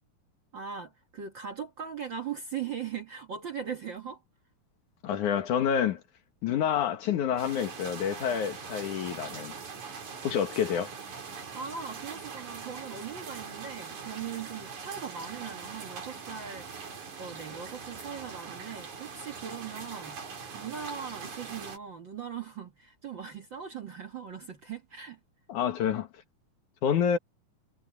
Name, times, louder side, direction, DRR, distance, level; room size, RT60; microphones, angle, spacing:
voice 1, 0.5-4.2 11.5-20.2 20.5-25.2, right 7 dB, 45° right, 1.7 m, -40 dB
voice 2, 5.0-6.0 6.4-9.6 10.2-10.9 25.5-26.1 26.8-27.2, left 8 dB, 70° left, 2.9 m, -28 dB
sound 1, 7.4-21.8, right 5 dB, 60° right, 5.1 m, -42 dB
omnidirectional pair, 3.7 m